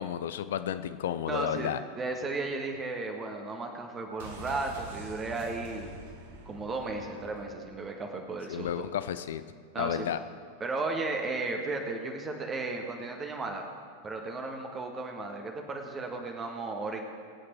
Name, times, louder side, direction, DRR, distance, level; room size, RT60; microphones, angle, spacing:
voice 1, 0.0-1.8 8.5-9.4 9.8-10.2, left 10 dB, 60° left, 12 dB, 0.5 m, -32 dB
voice 2, 1.3-5.9 6.4-8.9 9.7-10.1 10.6-13.6 14.0-17.0, right 3 dB, 20° right, 3 dB, 1.5 m, -35 dB
sound 1, 4.2-8.0 8.2-8.3, right 3 dB, 55° right, 2.1 m, -46 dB
23.5 x 8.6 x 4.5 m, 2.2 s
figure-of-eight pair, 90°, 0 cm